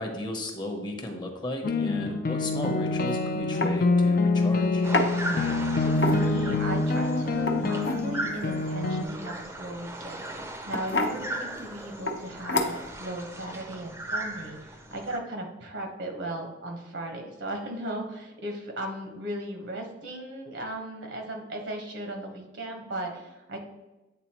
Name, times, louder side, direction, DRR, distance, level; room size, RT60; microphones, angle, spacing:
voice 1, 0.0-4.9, left 1 dB, 25° left, 3 dB, 0.8 m, -35 dB
sound 1, 1.6-9.0, left 3 dB, 50° left, 0.4 m, -26 dB
sound 2, 2.9-3.1 3.6-3.8 4.9-5.1 5.9-6.5 7.3-8.0 9.7-9.9 10.7-11.2 12.1-12.2 12.5-13.0, left 2 dB, 70° left, 0.8 m, -27 dB
sound 3, 4.8-15.2, right 1 dB, 15° right, 0.6 m, -38 dB
voice 2, 5.1-23.6, right 1 dB, 75° right, 3 dB, 1.2 m, -37 dB
8.4 x 3.9 x 3.0 m, 1.0 s
head